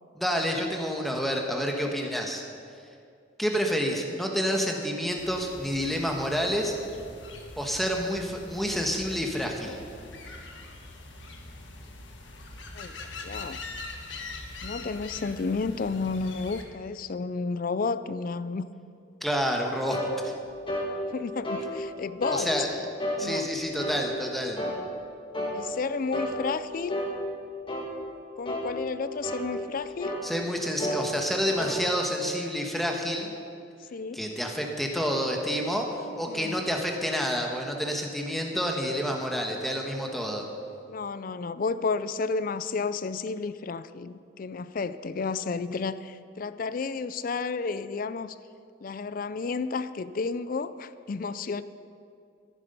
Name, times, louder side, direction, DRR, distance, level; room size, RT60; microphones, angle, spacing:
voice 1, 0.1-2.4 3.4-6.8 7.6-9.8 14.1-14.2 19.2-20.3 22.3-22.8 23.2-24.6 30.2-33.3 34.1-35.9 36.2-40.4, equal, ahead, 1 dB, 1.3 m, -29 dB
sound 1, 5.2-16.6, left 3 dB, 75° left, 1.5 m, -43 dB
voice 2, 12.7-13.6 14.6-18.6 21.1-22.5 23.2-23.5 25.5-27.1 28.4-30.2 33.8-34.3 36.3-36.6 40.9-48.4 48.8-51.6, left 4 dB, 45° left, 15 dB, 0.4 m, -32 dB
sound 2, 19.9-20.1 20.7-20.9 21.4-21.7 22.2-22.5 23.0-23.2 23.8-24.0 24.6-24.8 25.3-25.6 26.1-26.4 26.9-27.1 27.7-27.9 28.5-28.7 29.2-29.5 30.0-30.3 30.8-31.0 31.6-31.8, equal, 25° left, 2.0 m, -31 dB
14.0 x 11.0 x 5.4 m, 2.4 s
head